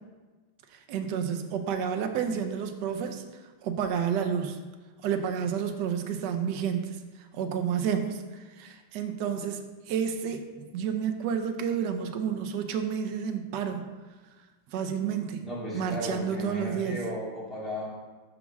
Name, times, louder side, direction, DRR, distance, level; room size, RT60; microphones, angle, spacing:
voice 1, 0.7-4.6 5.0-13.9 14.7-15.4 15.7-17.0, right 7 dB, 70° right, 6 dB, 1.1 m, -30 dB
voice 2, 15.4-17.9, equal, ahead, -7 dB, 1.9 m, -35 dB
5.4 x 4.8 x 6.1 m, 1.3 s
omnidirectional pair, 2.4 m